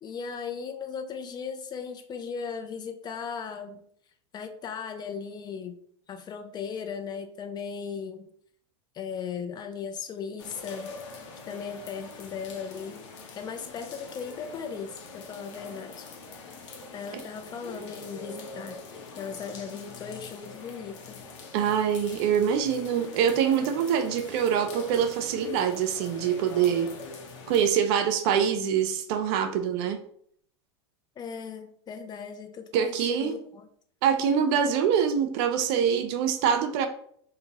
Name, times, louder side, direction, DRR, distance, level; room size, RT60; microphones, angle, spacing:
voice 1, 0.0-3.7 4.3-5.8 6.1-8.3 8.9-10.9 11.5-13.0 13.4-16.1 16.9-18.8 19.2-21.2 31.2-33.7, left 6 dB, 25° left, 7 dB, 0.4 m, -37 dB
sound 1, 10.4-27.7, left 4 dB, 65° left, 0.9 m, -43 dB
voice 2, 21.5-26.9 27.5-30.0 32.7-33.4 34.0-36.9, right 8 dB, 55° right, 8 dB, 0.5 m, -25 dB
2.7 x 2.5 x 4.0 m, 0.63 s
hypercardioid pair, 110°, 16 cm